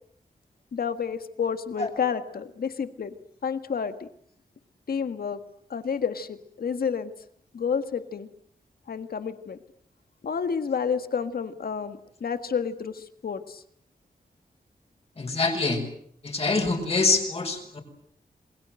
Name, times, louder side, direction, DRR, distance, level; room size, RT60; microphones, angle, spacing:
voice 1, 0.7-3.1 3.4-4.1 4.9-5.4 5.7-7.1 7.5-8.3 8.9-9.6 10.2-13.6, left 6 dB, 70° left, 10 dB, 1.7 m, -30 dB
voice 2, 15.2-15.8 16.2-17.8, left 3 dB, 40° left, 2 dB, 6.3 m, -25 dB
28.0 x 21.5 x 7.8 m, 0.66 s
wide cardioid pair, 140°, 16 cm